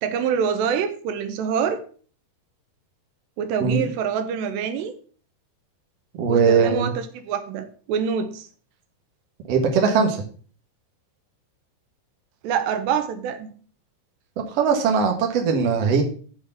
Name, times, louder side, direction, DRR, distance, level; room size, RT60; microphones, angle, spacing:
voice 1, 0.0-1.8 3.4-4.9 6.3-8.5 12.4-13.5, right 7 dB, 85° right, 9 dB, 3.0 m, -25 dB
voice 2, 6.2-6.9 9.5-10.2 14.5-16.0, right 5 dB, 55° right, 2 dB, 1.9 m, -20 dB
6.6 x 6.0 x 6.8 m, 0.43 s
omnidirectional pair, 4.9 m